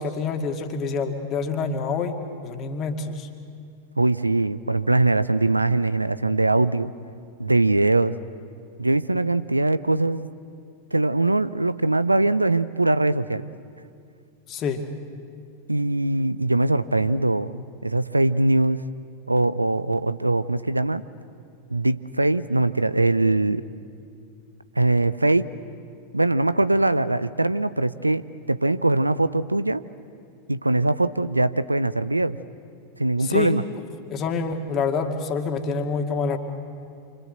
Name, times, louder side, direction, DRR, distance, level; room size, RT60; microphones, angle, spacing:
voice 1, 0.0-3.3 14.5-14.8 33.2-33.6 34.1-36.4, left 5 dB, 30° left, 5 dB, 2.2 m, -27 dB
voice 2, 4.0-6.9 7.4-8.2 8.8-10.3 10.9-13.5 15.7-18.9 19.3-21.0 21.7-23.6 24.8-25.5 26.1-29.8 30.5-32.4 33.0-33.6, right 2 dB, 85° right, 15 dB, 0.6 m, -22 dB
28.0 x 24.5 x 8.0 m, 2.4 s
figure-of-eight pair, 90°, 0 cm